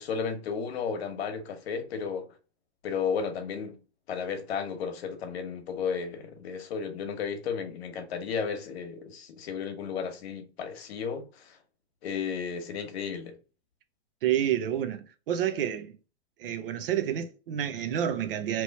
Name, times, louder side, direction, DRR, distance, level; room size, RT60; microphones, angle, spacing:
voice 1, 0.0-2.3 2.8-3.8 4.1-11.6 12.0-13.4, left 6 dB, 65° left, 1.1 m, -33 dB
voice 2, 14.2-16.0 16.4-18.6, right 10 dB, 55° right, 0.7 m, -29 dB
3.1 x 3.0 x 4.0 m
supercardioid pair, 165°, 33 cm